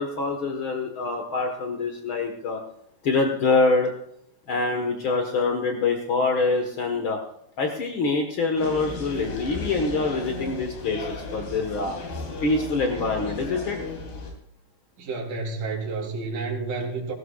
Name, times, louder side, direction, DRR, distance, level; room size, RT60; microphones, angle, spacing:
voice 1, 0.0-2.6 3.0-3.9 4.5-7.2 7.6-11.9 12.4-13.8, left 3 dB, 65° left, 4 dB, 1.2 m, -25 dB
sound 1, 8.6-14.3, left 2 dB, 90° left, 5.2 m, -34 dB
voice 2, 15.0-17.1, right 3 dB, 60° right, -2 dB, 4.8 m, -30 dB
18.5 x 17.0 x 2.4 m, 0.73 s
omnidirectional pair, 4.5 m